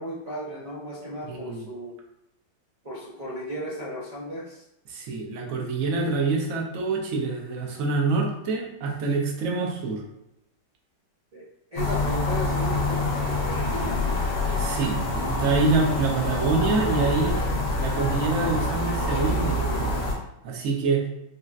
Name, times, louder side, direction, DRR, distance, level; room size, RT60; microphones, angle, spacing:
voice 1, 0.0-2.0 2.8-4.6 11.3-11.4 11.7-14.2, equal, 85° right, -11 dB, 0.3 m, -35 dB
voice 2, 1.3-1.7 4.9-10.0 14.6-17.4 17.8-20.0 20.4-21.1, right 3 dB, 65° right, 0 dB, 0.9 m, -26 dB
sound 1, 11.8-20.2, left 2 dB, 80° left, 1.3 m, -26 dB
4.0 x 2.1 x 2.3 m, 0.87 s
omnidirectional pair, 1.9 m